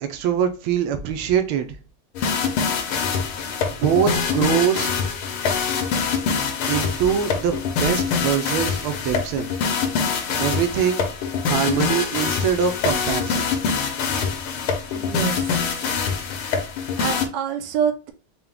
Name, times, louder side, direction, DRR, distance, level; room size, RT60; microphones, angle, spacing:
voice 1, 0.0-1.8 2.2-2.3 3.7-4.9 6.7-9.5 10.4-11.0 11.5-13.5, right 8 dB, 85° right, 7 dB, 1.4 m, -23 dB
sound 1, 2.2-17.3, left 5 dB, 85° left, 1.6 m, -24 dB
voice 2, 14.9-15.8 17.0-18.1, right 7 dB, 65° right, 5 dB, 1.2 m, -26 dB
4.5 x 2.2 x 3.4 m, 0.35 s
omnidirectional pair, 2.3 m